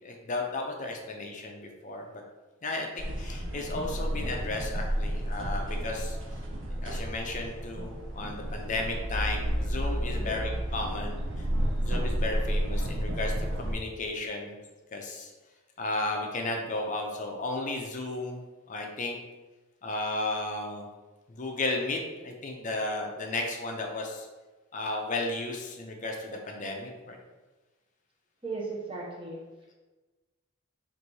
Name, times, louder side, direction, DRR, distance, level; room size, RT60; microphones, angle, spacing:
voice 1, 0.0-2.2 2.6-6.2 6.8-11.5 11.8-14.5 14.9-15.3 15.8-19.2 19.8-20.9 21.3-24.3 24.7-27.2, left 2 dB, 35° left, 2 dB, 0.5 m, -34 dB
sound 1, 3.0-13.8, equal, 60° right, 0.7 m, -31 dB
voice 2, 28.4-29.4, right 3 dB, 25° right, -4 dB, 0.9 m, -36 dB
4.1 x 2.6 x 4.6 m, 1.2 s
head